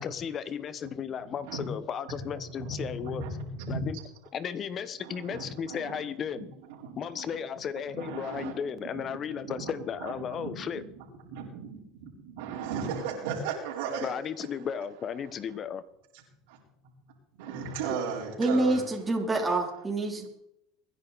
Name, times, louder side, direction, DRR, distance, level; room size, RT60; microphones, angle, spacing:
voice 1, 0.0-3.3 3.7-4.0 4.3-6.5 7.0-10.8 14.0-15.8, left 7 dB, 40° left, 1.2 m, -35 dB
voice 2, 2.6-3.9 5.0-6.0 6.3-6.4 6.8-7.3 7.9-8.5 8.9-9.7 10.0-10.1 10.4-10.8 11.2-14.1 16.5-16.6 17.4-18.9, right 5 dB, 80° right, 4.3 m, -36 dB
voice 3, 18.4-20.3, right 2 dB, 15° right, 3.7 m, -27 dB
24.5 x 10.5 x 4.2 m
supercardioid pair, 95°, 0 cm